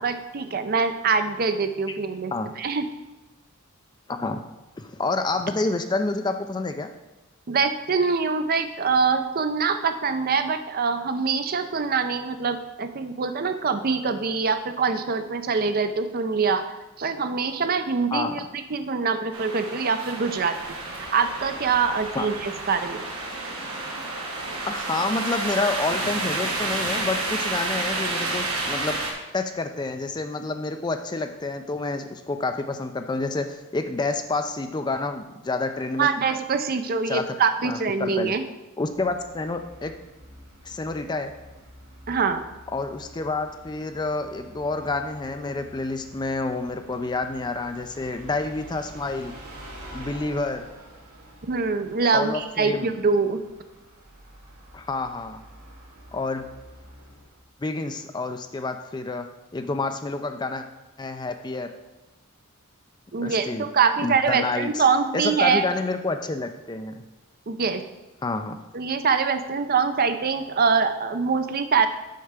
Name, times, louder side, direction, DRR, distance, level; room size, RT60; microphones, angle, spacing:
voice 1, 0.0-2.9 7.5-16.6 17.0-20.5 21.1-23.1 36.0-38.4 42.1-42.4 51.4-53.4 63.1-65.6 67.5-67.8 68.7-71.9, right 5 dB, 40° right, 9 dB, 0.5 m, -24 dB
voice 2, 4.1-4.4 4.8-6.9 18.1-18.3 22.1-22.3 24.7-36.1 37.1-37.2 37.6-38.3 38.8-39.9 40.6-41.3 42.7-49.3 49.9-50.7 52.1-52.9 54.7-55.4 56.1-56.5 57.6-59.3 59.5-60.7 61.0-61.7 63.2-63.7 64.0-64.8 65.1-67.0 68.2-68.6, left 3 dB, 20° left, 7 dB, 0.4 m, -28 dB
sound 1, 19.3-29.1, right 2 dB, 70° right, 1.6 m, -30 dB
Bus, 38.9-57.4, equal, 85° right, 2.7 m, -47 dB
6.6 x 4.6 x 6.6 m, 1.1 s
head